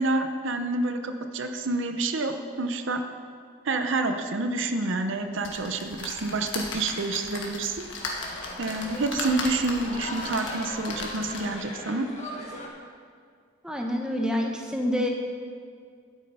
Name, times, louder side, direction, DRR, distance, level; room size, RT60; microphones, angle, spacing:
voice 1, 0.0-3.0 3.6-7.8 8.6-12.1, right 2 dB, 65° right, 7 dB, 0.7 m, -28 dB
sound 1, 5.4-11.6 12.2-12.3 12.5-12.6, left 3 dB, 60° left, 1.6 m, -37 dB
sound 2, 7.6-12.7, left 1 dB, 30° left, 1.5 m, -39 dB
voice 2, 13.6-15.1, left 1 dB, 5° right, 1 dB, 0.9 m, -27 dB
12.0 x 8.3 x 5.4 m, 2.1 s
head